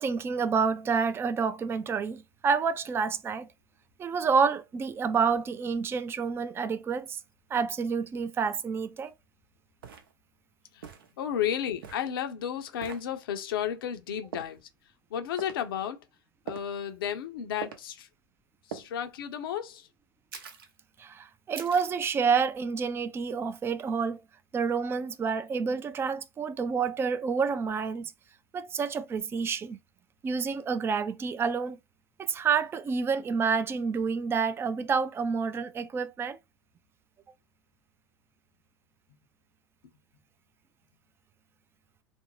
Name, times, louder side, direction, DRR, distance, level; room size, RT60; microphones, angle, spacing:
voice 1, 0.0-3.5 4.0-7.2 7.5-9.1 21.0-24.2 24.5-28.1 28.5-29.8 30.2-31.8 32.2-36.4, right 5 dB, 20° right, 0.3 m, -28 dB
sound 1, 9.1-9.2 9.8-10.1 10.8-11.1 11.8-12.1 12.8-13.0 14.3-14.6 15.4-15.6 16.5-16.8 17.6-17.8 18.7-18.9 20.3-20.7 21.5-22.0, right 7 dB, 75° right, 0.6 m, -42 dB
voice 2, 11.2-14.6 15.1-16.0 16.5-18.1 18.7-19.9, left 9 dB, 75° left, 0.6 m, -33 dB
2.5 x 2.1 x 3.0 m
hypercardioid pair, 85°, 12 cm